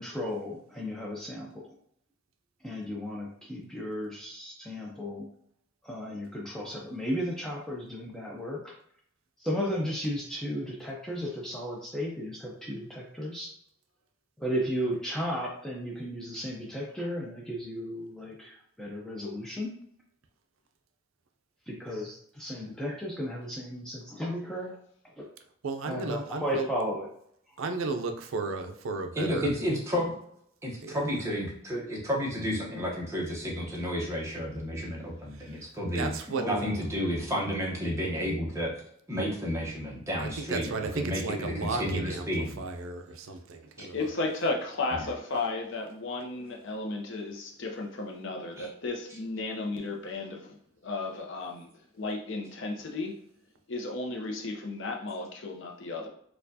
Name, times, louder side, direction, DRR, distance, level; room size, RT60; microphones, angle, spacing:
voice 1, 0.0-1.7 2.6-5.3 5.8-8.7 9.4-13.5 14.4-19.8 21.7-24.8 25.2-25.3 25.9-27.1 36.3-36.8, equal, 5° left, -4 dB, 0.4 m, -34 dB
voice 2, 25.6-26.7 27.6-29.5 30.8-31.0 35.3-35.6 36.0-36.4 40.2-44.1, right 3 dB, 70° right, 6 dB, 0.4 m, -34 dB
voice 3, 29.1-30.1 30.6-36.1 36.5-38.8 39.1-42.6 43.8-43.9 44.9-45.0 48.6-48.7, equal, 15° right, -4 dB, 0.9 m, -31 dB
voice 4, 43.8-50.6 50.8-51.7 52.0-53.2 53.7-56.1, left 3 dB, 60° left, 1 dB, 0.7 m, -34 dB
4.3 x 2.4 x 2.7 m, 0.68 s
head